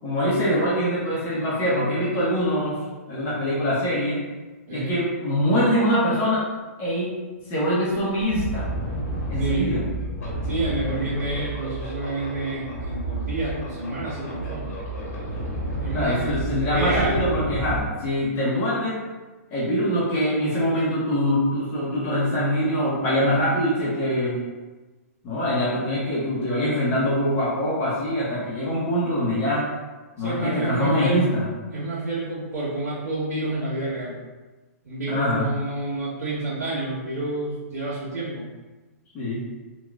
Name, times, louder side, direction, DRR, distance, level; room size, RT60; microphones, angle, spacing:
voice 1, 0.0-2.8 3.1-4.2 4.7-6.4 6.8-7.1 7.5-8.7 9.3-9.8 15.9-19.0 19.5-24.4 25.2-29.7 30.2-31.5 35.1-35.5 39.1-39.4, equal, 25° left, -8 dB, 0.7 m, -23 dB
sound 1, 7.4-7.5 7.9-17.8, right 2 dB, 70° left, 1.1 m, -30 dB
voice 2, 9.4-9.7 10.4-14.7 15.8-17.3 30.2-31.2 31.7-34.1 34.8-38.5, right 2 dB, 80° right, -10 dB, 1.4 m, -29 dB
3.0 x 2.3 x 2.4 m, 1.2 s
hypercardioid pair, 155°, 9 cm